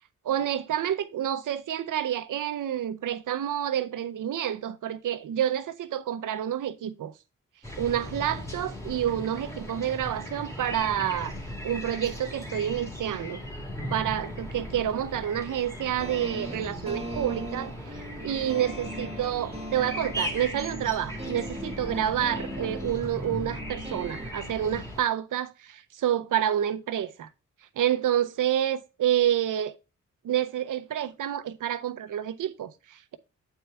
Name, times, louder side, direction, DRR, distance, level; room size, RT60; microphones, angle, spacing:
voice 1, 0.2-7.1 7.8-11.3 11.6-13.4 13.9-27.3 27.8-29.7 30.2-33.2, right 10 dB, 85° right, 0.7 m, -28 dB
sound 1, 7.6-25.0, equal, 10° left, 1.9 m, -38 dB
sound 2, 16.0-24.3, right 1 dB, 20° right, 1.1 m, -39 dB
8.2 x 4.5 x 3.2 m
wide cardioid pair, 105°, 31 cm